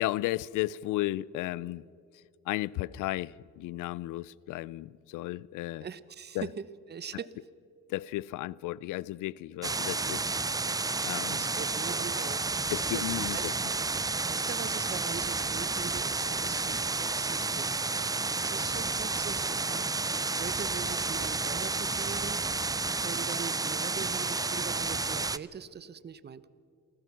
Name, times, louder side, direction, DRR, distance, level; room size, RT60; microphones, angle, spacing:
voice 1, 0.0-1.9 2.5-5.9 6.3-6.5 7.9-10.3 11.0-11.4 12.7-13.5, left 17 dB, 90° left, 0.5 m, -34 dB
voice 2, 5.8-6.5 6.9-7.3 11.3-13.4 14.0-17.8 18.4-19.9 20.4-22.4 23.0-26.5, right 7 dB, 35° right, 0.8 m, -42 dB
sound 1, 9.6-25.4, right 3 dB, 10° right, 0.4 m, -31 dB
27.5 x 15.5 x 6.1 m
cardioid pair, 90°, 30 cm